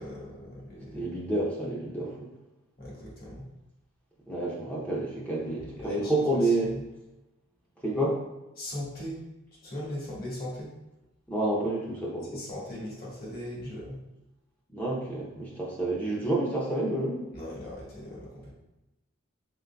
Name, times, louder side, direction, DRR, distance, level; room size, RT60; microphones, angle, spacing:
voice 1, 0.0-1.1 2.8-3.5 5.7-6.8 8.6-9.2 9.6-10.7 12.3-14.0 17.3-18.5, left 1 dB, 45° left, -5 dB, 1.4 m, -39 dB
voice 2, 0.9-2.3 4.3-6.7 7.8-8.2 11.3-12.4 14.7-17.2, right 1 dB, 5° left, -5 dB, 0.5 m, -29 dB
3.8 x 3.8 x 2.2 m, 0.99 s
head